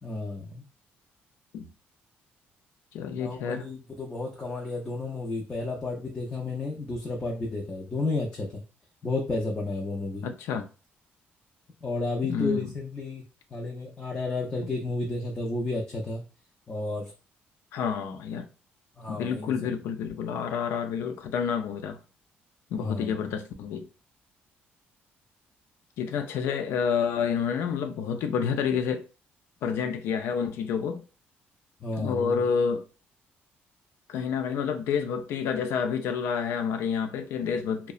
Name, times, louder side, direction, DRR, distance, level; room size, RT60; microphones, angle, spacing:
voice 1, 0.0-0.6 3.1-8.6 9.0-10.3 11.8-13.2 13.5-16.2 16.7-17.1 19.0-19.5 22.8-23.3 31.8-32.4, left 2 dB, 25° left, 0.4 m, -32 dB
voice 2, 2.9-3.6 10.2-10.7 12.2-12.7 14.6-14.7 17.7-18.5 19.1-22.0 22.7-23.9 26.0-29.1 29.6-31.0 31.9-32.9 34.1-37.9, left 6 dB, 90° left, 0.4 m, -29 dB
2.7 x 2.1 x 2.3 m
cardioid pair, 140°, 4 cm